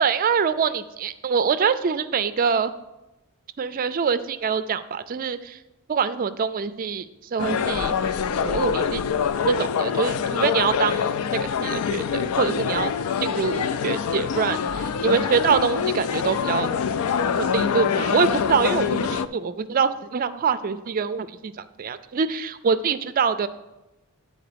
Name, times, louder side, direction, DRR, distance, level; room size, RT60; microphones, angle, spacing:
voice 1, 0.0-2.7 3.6-5.6 5.9-7.0 7.3-7.9 8.4-9.0 9.5-12.9 13.2-16.7 17.4-21.5 21.8-23.5, right 6 dB, 40° right, 12 dB, 0.4 m, -24 dB
sound 1, 7.4-19.3, left 7 dB, 85° left, 0.4 m, -25 dB
8.9 x 4.3 x 6.7 m, 0.97 s
head